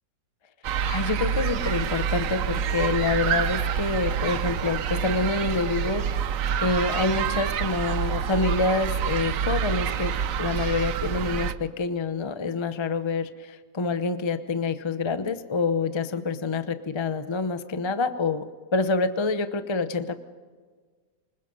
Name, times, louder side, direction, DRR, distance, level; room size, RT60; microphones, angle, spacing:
sound 1, 0.6-11.5, right 8 dB, 60° right, 1.0 m, -27 dB
voice 1, 0.8-6.3 6.6-18.5 18.7-20.2, left 4 dB, 30° left, 10 dB, 0.5 m, -27 dB
25.5 x 21.0 x 5.4 m, 1.5 s
omnidirectional pair, 1.9 m